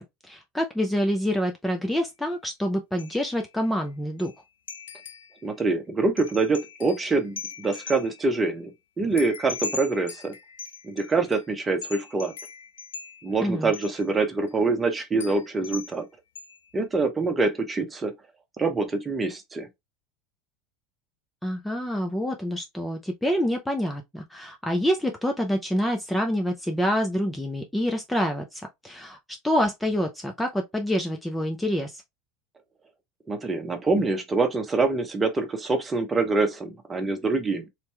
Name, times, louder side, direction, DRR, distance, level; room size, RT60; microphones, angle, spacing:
voice 1, 0.0-4.3 13.4-13.7 21.4-32.0, equal, 5° left, 0.7 m, -27 dB
sound 1, 1.9-2.0 3.0-3.4 3.7-3.8 4.2-4.4 4.7-5.4 6.2-8.3 9.2-11.5 11.8-13.4 13.7-14.1 14.5-14.6 15.2-16.0 16.4-16.7, left 5 dB, 75° left, 0.5 m, -40 dB
voice 2, 5.4-8.7 9.0-10.3 10.8-12.3 13.2-16.1 16.7-18.1 18.6-19.7 33.3-37.7, right 3 dB, 20° right, 1.1 m, -25 dB
3.3 x 2.9 x 3.2 m
figure-of-eight pair, 75°, 0 cm